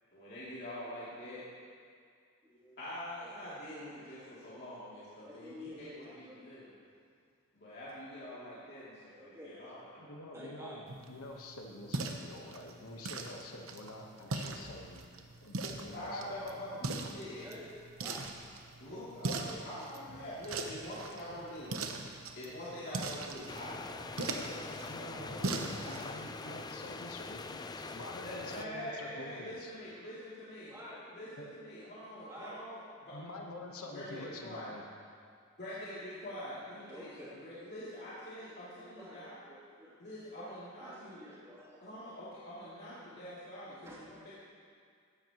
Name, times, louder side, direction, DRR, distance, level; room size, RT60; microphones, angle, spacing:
voice 1, 0.1-1.4 2.8-6.6 7.5-10.1 15.9-17.4 18.8-21.8 22.4-26.5 28.2-30.8 31.1-33.2 33.9-34.7 35.6-39.3 40.0-41.2 41.8-44.3, left 1 dB, 50° left, -11 dB, 2.8 m, -45 dB
voice 2, 2.4-2.8 3.2-3.3 5.0-6.5 9.2-9.6 10.3-11.0 17.4-18.4 30.7-31.9 32.2-32.6 36.9-38.1 38.8-39.9 40.4-42.0 43.8-44.0, equal, 15° right, -8 dB, 2.9 m, -51 dB
voice 3, 10.0-15.0 15.4-16.5 21.1-21.4 24.8-29.7 30.9-31.0 31.4-31.5 33.1-34.8, left 2 dB, 85° left, 1 dB, 1.3 m, -47 dB
sound 1, 10.9-26.1, right 2 dB, 70° right, 1.0 m, -41 dB
sound 2, 23.5-28.7, left 3 dB, 20° left, 0.4 m, -44 dB
16.0 x 12.0 x 3.1 m, 2.2 s
head